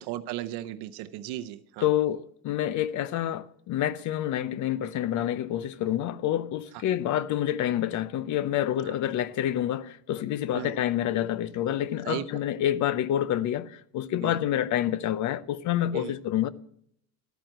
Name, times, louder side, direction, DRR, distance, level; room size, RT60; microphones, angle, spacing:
voice 1, 0.1-1.9 8.8-8.9 10.5-10.7 12.0-12.2 14.2-14.4 15.9-16.1, right 14 dB, 80° right, 0.7 m, -35 dB
voice 2, 1.8-16.5, left 11 dB, 50° left, 0.7 m, -28 dB
12.5 x 8.9 x 7.8 m
cardioid pair, 165°, 39 cm